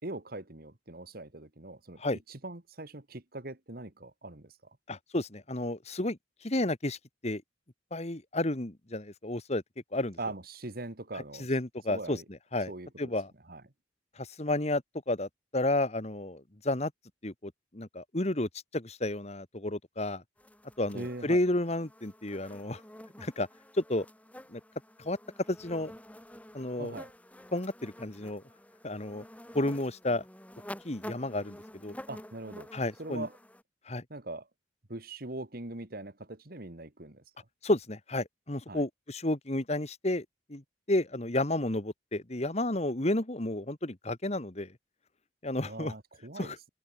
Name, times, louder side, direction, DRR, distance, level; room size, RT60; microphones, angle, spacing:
voice 1, 0.0-2.0 2.3-4.5 10.2-11.5 11.9-12.2 12.7-13.1 13.5-13.6 20.9-21.4 26.8-27.1 32.1-32.7 33.0-33.3 34.1-34.5 34.9-37.2 38.7-38.8 45.6-46.5, right 2 dB, 50° right, 2.1 m, -41 dB
voice 2, 4.9-6.2 6.4-7.0 7.2-7.4 7.9-9.6 9.9-10.2 11.4-12.2 12.5-12.7 13.0-13.3 14.2-14.8 15.1-16.9 17.2-20.2 20.8-22.8 23.2-23.5 23.7-24.1 24.5-24.6 25.1-25.2 25.5-25.9 26.5-27.0 27.5-28.4 28.8-29.2 29.5-30.2 30.8-32.0 32.7-33.3 33.9-34.0 37.6-40.6 40.9-44.7 45.4-45.9 46.4-46.6, left 1 dB, 35° left, 1.8 m, -31 dB
sound 1, 20.4-33.6, left 1 dB, 10° left, 2.2 m, -49 dB
head